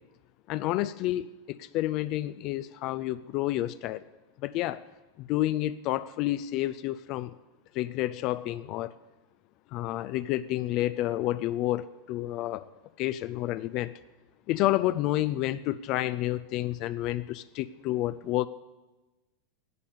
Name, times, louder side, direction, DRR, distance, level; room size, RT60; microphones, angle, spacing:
voice 1, 0.5-4.1 4.4-4.8 5.2-7.3 7.7-9.0 9.7-12.7 13.0-13.9 14.5-18.5, left 15 dB, 45° left, 14 dB, 0.4 m, -30 dB
12.0 x 8.4 x 8.3 m, 1.1 s
figure-of-eight pair, 85°, 0 cm